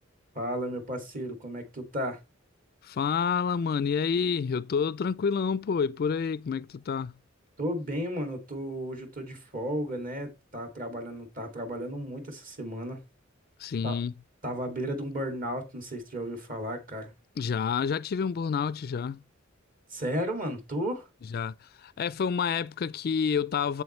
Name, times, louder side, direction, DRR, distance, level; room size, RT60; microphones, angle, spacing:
voice 1, 0.3-2.2 7.6-13.0 13.8-14.0 14.4-17.1 19.9-21.1, equal, 45° right, 2.3 m, -34 dB
voice 2, 2.8-7.1 13.6-14.1 17.4-19.2 21.3-21.5 21.8-23.8, left 6 dB, 50° left, 0.4 m, -28 dB
7.8 x 7.7 x 3.2 m
head